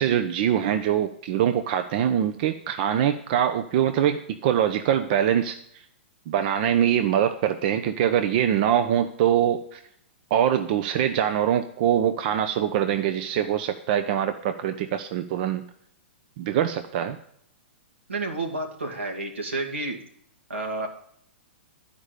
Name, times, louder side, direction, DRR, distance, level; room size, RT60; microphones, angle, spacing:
voice 1, 0.0-5.6 6.3-9.8 10.3-15.6 16.4-17.2, right 10 dB, 50° right, 7 dB, 0.7 m, -23 dB
voice 2, 18.1-20.0 20.5-20.9, right 2 dB, 90° right, 1 dB, 2.0 m, -30 dB
11.0 x 5.2 x 6.6 m, 0.68 s
hypercardioid pair, 115°, 6 cm